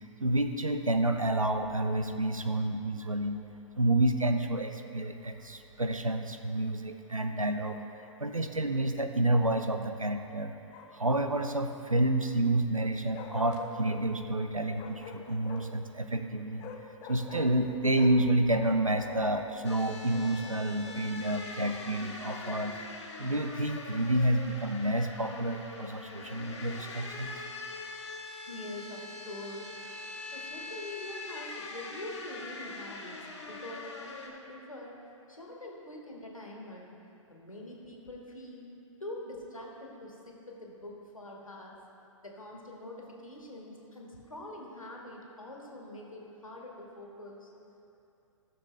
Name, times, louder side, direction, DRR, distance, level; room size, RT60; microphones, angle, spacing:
voice 1, 0.2-3.4 3.8-7.8 8.2-10.5 10.9-16.6 17.1-22.8 23.2-27.3, right 1 dB, 90° right, 7 dB, 0.7 m, -29 dB
Bark, 7.6-8.2 10.7-11.8 13.1-14.0 14.7-15.8 16.6-18.3 18.6-21.0 21.6-22.6, left 6 dB, 25° left, 0.6 m, -47 dB
sound 1, 19.6-34.3, left 3 dB, 55° left, 1.6 m, -43 dB
voice 2, 28.5-29.8 30.3-34.9 35.3-36.9 37.3-38.6 39.0-41.7 42.2-47.5, left 1 dB, 80° left, -2 dB, 1.9 m, -44 dB
15.5 x 6.9 x 3.3 m, 2.8 s
figure-of-eight pair, 115°, 17 cm